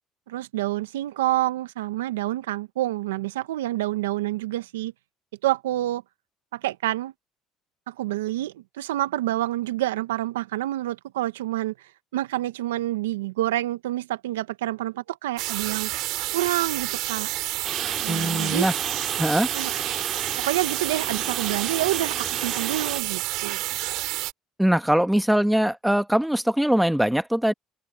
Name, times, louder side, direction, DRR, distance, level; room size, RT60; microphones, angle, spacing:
voice 1, 0.3-4.9 5.4-6.0 6.5-7.1 7.9-11.7 12.1-15.9 16.3-17.3 18.0-18.7 19.5-19.7 20.4-23.6, right 15 dB, 85° right, 1.5 m, -28 dB
sound 1, 15.4-24.3, right 19 dB, 70° right, 6.8 m, -29 dB
Rain, 17.6-23.0, right 5 dB, 35° right, 3.5 m, -34 dB
voice 2, 18.1-18.7 19.2-19.5 24.6-27.5, equal, 5° right, 1.5 m, -22 dB
open air
hypercardioid pair, 65°, 0 cm